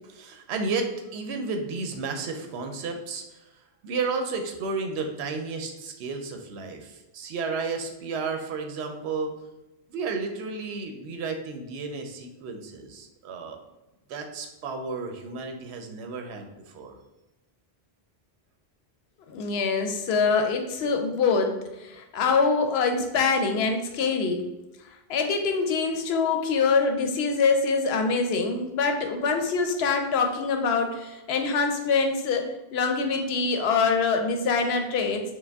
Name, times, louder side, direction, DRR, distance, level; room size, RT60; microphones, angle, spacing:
voice 1, 0.0-3.4 3.8-9.4 9.9-13.6 14.1-17.0, right 4 dB, 85° right, 4 dB, 0.8 m, -32 dB
voice 2, 19.3-24.4 25.1-35.2, left 4 dB, 75° left, 5 dB, 0.8 m, -24 dB
4.7 x 2.2 x 3.4 m, 1.0 s
omnidirectional pair, 1.1 m